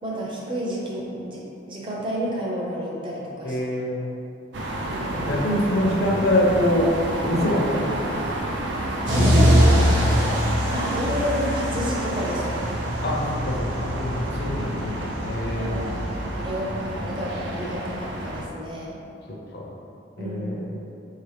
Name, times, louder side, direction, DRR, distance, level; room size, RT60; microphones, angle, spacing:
voice 1, 0.0-3.6 4.9-5.4 8.9-9.7 10.7-12.7 13.0-13.2 15.6-16.0 16.3-19.0 20.2-20.7, equal, 25° right, -4 dB, 0.6 m, -30 dB
voice 2, 3.4-4.1 5.2-6.9 7.2-8.3 9.1-10.3 13.0-15.8 19.5-19.7 20.2-20.7, left 1 dB, 55° left, -3 dB, 0.6 m, -25 dB
sound 1, 4.5-18.5, right 1 dB, 70° right, 0.5 m, -30 dB
sound 2, 9.1-16.5, equal, 85° right, 0.9 m, -24 dB
4.1 x 2.8 x 3.3 m, 2.7 s
head